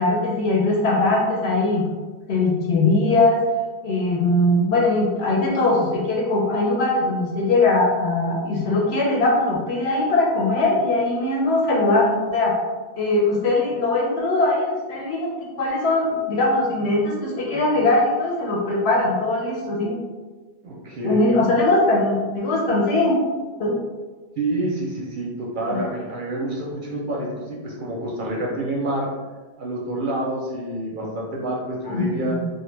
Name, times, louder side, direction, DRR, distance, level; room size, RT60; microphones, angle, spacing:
voice 1, 0.0-1.9 2.3-3.4 3.8-12.5 13.0-15.3 15.6-19.9 21.0-23.2 23.6-23.8 25.7-25.8 31.8-32.5, left 2 dB, 75° left, -3 dB, 0.9 m, -20 dB
voice 2, 20.6-21.2 24.4-29.1 29.6-32.4, right 1 dB, 60° right, -3 dB, 0.6 m, -27 dB
2.2 x 2.1 x 3.1 m, 1.3 s
omnidirectional pair, 1.1 m